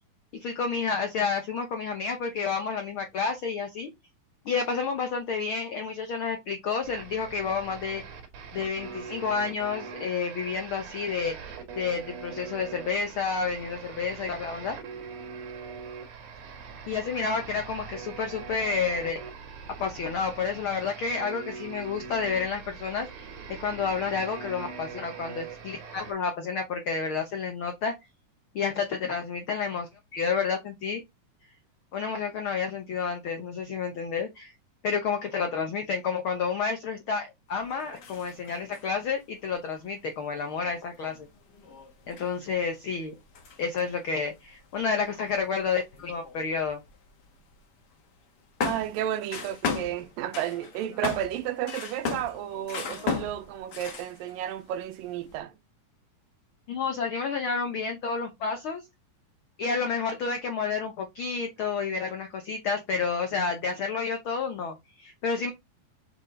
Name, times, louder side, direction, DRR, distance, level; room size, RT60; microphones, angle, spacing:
voice 1, 0.3-3.9 4.4-8.0 8.5-11.3 11.7-14.8 16.9-19.2 19.7-27.9 28.5-31.0 31.9-34.5 34.8-41.3 42.1-43.1 43.6-46.8 56.7-58.8 59.6-65.5, left 5 dB, 85° left, 1.1 m, -30 dB
sound 1, 6.8-26.1, right 5 dB, 65° right, 2.9 m, -42 dB
sound 2, 37.5-38.9 39.5-39.6 39.8-39.9 40.3-47.6 47.9-48.0 48.6-54.4 54.7-55.4, left 5 dB, 55° left, 1.2 m, -37 dB
voice 2, 48.6-55.5, right 12 dB, 90° right, 2.5 m, -32 dB
6.5 x 4.9 x 3.8 m
omnidirectional pair, 3.9 m